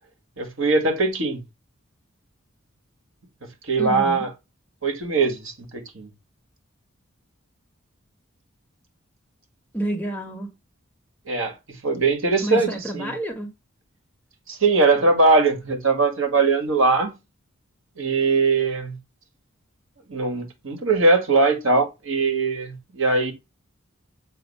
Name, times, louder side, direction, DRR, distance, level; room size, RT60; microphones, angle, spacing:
voice 1, 0.4-1.4 3.7-4.3 4.8-6.1 11.3-11.5 11.8-13.1 14.5-17.1 18.0-19.0 20.1-23.3, right 3 dB, 70° right, 1.8 m, -21 dB
voice 2, 3.8-4.3 9.7-10.5 12.4-13.5, right 1 dB, 5° left, 1.4 m, -29 dB
7.8 x 2.7 x 5.4 m
head